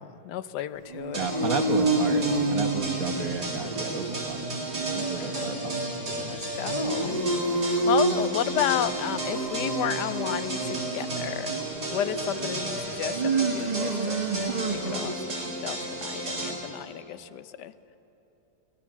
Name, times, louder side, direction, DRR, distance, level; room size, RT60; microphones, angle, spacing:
voice 1, 0.0-1.6 4.9-5.8 6.2-7.2 7.6-11.6 11.9-17.7, left 11 dB, 85° left, 14 dB, 1.3 m, -33 dB
sound 1, 0.8-15.3, right 2 dB, 30° right, 1.1 m, -30 dB
voice 2, 1.1-4.4 5.1-6.4, right 5 dB, 60° right, 6 dB, 1.6 m, -33 dB
sound 2, 1.1-16.5, right 2 dB, 80° right, 4.1 m, -33 dB
22.5 x 16.0 x 7.3 m, 2.9 s
omnidirectional pair, 1.8 m